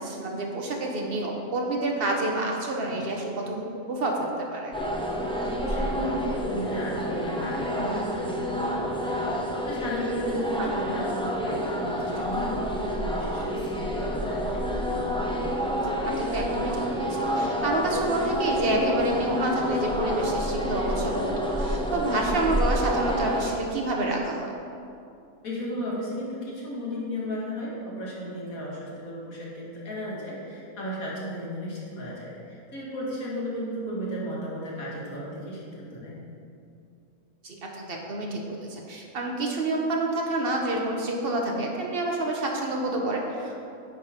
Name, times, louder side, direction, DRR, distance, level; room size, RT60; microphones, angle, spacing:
voice 1, 0.0-4.7 10.6-10.7 15.8-21.3 21.6-24.5 37.4-43.6, right 2 dB, 45° right, 0 dB, 1.1 m, -28 dB
sound 1, 4.7-23.5, equal, 5° left, 0.4 m, -28 dB
voice 2, 5.6-14.6 25.4-36.2, equal, 70° left, -5 dB, 2.1 m, -34 dB
9.6 x 4.2 x 5.0 m, 2.5 s
omnidirectional pair, 1.5 m